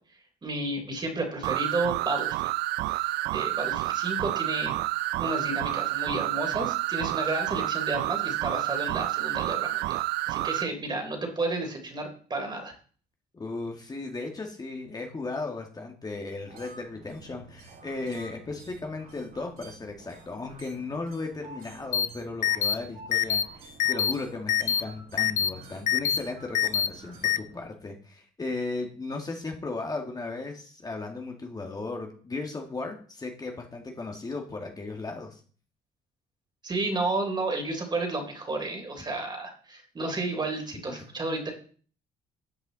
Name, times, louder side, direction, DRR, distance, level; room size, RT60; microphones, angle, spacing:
voice 1, 0.4-2.5 2.9-3.0 3.3-4.7 5.2-12.7 36.6-41.5, right 2 dB, 25° right, 3 dB, 3.5 m, -32 dB
sound 1, 1.4-10.7, right 18 dB, 85° right, 0.4 m, -29 dB
voice 2, 13.3-35.4 40.9-41.0, left 3 dB, 25° left, 2 dB, 2.0 m, -36 dB
sound 2, 16.5-27.6, right 3 dB, 65° right, 5.3 m, -49 dB
sound 3, 21.9-22.1 22.4-22.7 23.1-23.4 23.8-24.1 24.5-24.8 25.2-25.5 25.9-26.2 26.5-26.9 27.2-27.4, left 9 dB, 45° left, 0.5 m, -24 dB
13.0 x 7.9 x 4.1 m, 0.43 s
cardioid pair, 110°, 17 cm